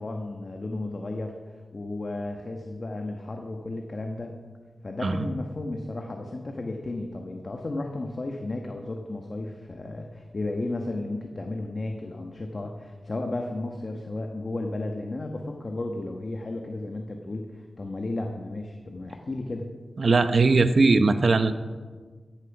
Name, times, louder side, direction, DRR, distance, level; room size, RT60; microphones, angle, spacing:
voice 1, 0.0-4.4 4.8-19.7, left 2 dB, 40° left, 3 dB, 1.2 m, -33 dB
voice 2, 20.0-21.5, right 3 dB, 55° right, 10 dB, 0.9 m, -20 dB
14.0 x 10.5 x 6.0 m, 1.4 s
wide cardioid pair, 95°, 0 cm